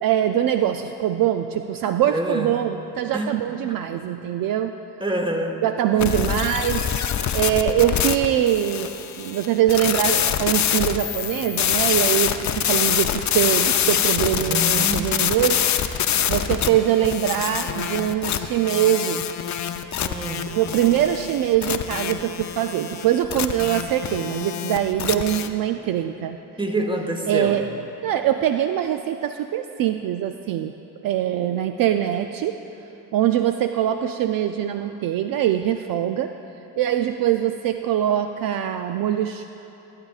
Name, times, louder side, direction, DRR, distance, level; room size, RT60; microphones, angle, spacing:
voice 1, 0.0-4.7 5.6-6.8 7.3-8.9 9.2-15.6 16.3-19.3 20.5-26.4 27.3-27.6 28.0-30.7 31.0-32.6 33.1-36.3 36.8-39.5, right 11 dB, 60° right, 7 dB, 0.5 m, -23 dB
voice 2, 2.1-2.5 3.1-3.7 5.0-5.6 5.9-6.2 14.4-15.1 20.0-20.5 26.6-27.6, right 1 dB, 10° right, 4 dB, 1.2 m, -27 dB
sound 1, 6.0-25.5, left 9 dB, 45° left, 0.6 m, -25 dB
17.0 x 8.3 x 2.4 m, 3.0 s
supercardioid pair, 55°, 39 cm